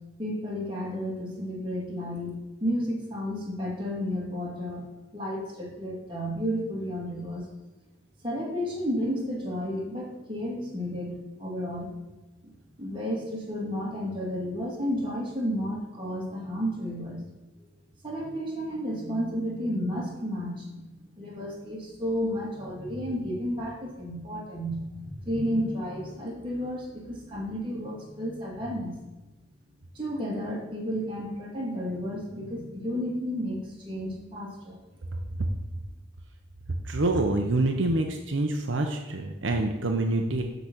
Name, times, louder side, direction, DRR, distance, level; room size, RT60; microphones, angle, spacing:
voice 1, 0.2-4.8 5.1-7.5 8.2-11.9 12.4-12.5 12.8-17.2 18.0-29.0 29.9-34.8, equal, 25° right, -4 dB, 2.3 m, -32 dB
voice 2, 36.9-40.4, right 2 dB, 75° right, 3 dB, 0.8 m, -26 dB
12.0 x 4.0 x 6.1 m, 1.1 s
head